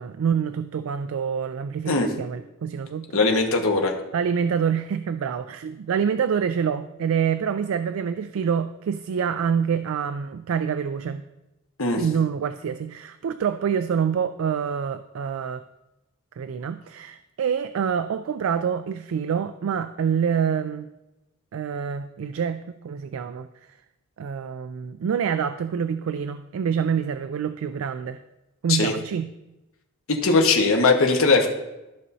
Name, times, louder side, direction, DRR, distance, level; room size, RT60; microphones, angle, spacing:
voice 1, 0.0-3.2 4.1-11.2 12.0-15.6 16.4-20.9 21.5-23.5 24.2-28.2 28.6-29.3, right 7 dB, 80° right, 11 dB, 0.3 m, -26 dB
voice 2, 3.1-3.9 11.8-12.0 28.7-28.9 30.1-31.5, left 3 dB, 90° left, 2 dB, 1.2 m, -20 dB
14.0 x 5.5 x 2.7 m, 0.98 s
head